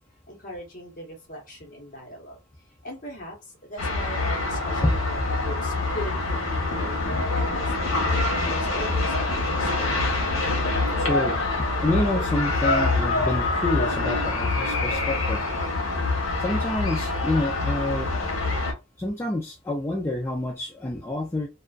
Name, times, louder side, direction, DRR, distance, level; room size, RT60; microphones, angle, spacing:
voice 1, 0.3-2.4 2.8-7.0 7.3-10.2, equal, 40° left, 0.9 m, -39 dB
sound 1, 3.8-18.7, left 2 dB, 75° left, 0.8 m, -25 dB
voice 2, 11.0-11.4 11.8-15.4 16.4-18.1 19.0-21.5, left 1 dB, 10° left, 0.3 m, -27 dB
2.4 x 2.3 x 2.2 m
head